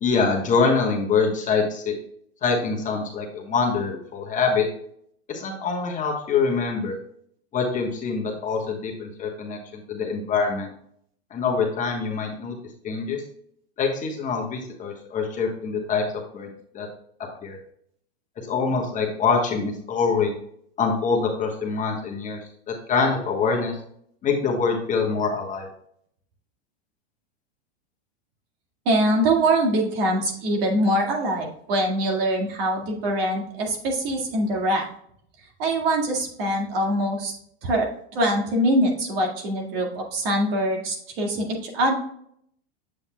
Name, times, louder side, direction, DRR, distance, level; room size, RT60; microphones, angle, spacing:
voice 1, 0.0-1.9 2.4-4.7 5.3-7.0 7.5-10.7 11.3-12.6 12.8-13.2 13.8-16.0 16.3-16.9 17.4-17.6 18.4-20.3 20.8-22.4 22.7-23.8 24.2-25.7, left 5 dB, 25° left, 1 dB, 1.2 m, -24 dB
voice 2, 28.9-34.9 35.6-37.3 37.6-37.9 38.1-41.9, right 1 dB, 60° right, 1 dB, 2.0 m, -23 dB
7.5 x 6.4 x 2.2 m, 0.68 s
supercardioid pair, 130°, 33 cm